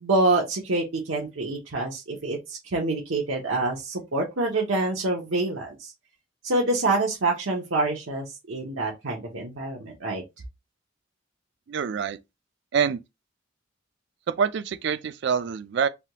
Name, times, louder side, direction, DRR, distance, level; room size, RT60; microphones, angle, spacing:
voice 1, 0.0-5.9 6.4-10.2, right 2 dB, 80° right, 0.8 m, -26 dB
voice 2, 11.7-12.2 12.7-13.0 14.3-15.9, right 6 dB, 60° right, 0.4 m, -25 dB
3.3 x 2.2 x 2.8 m
head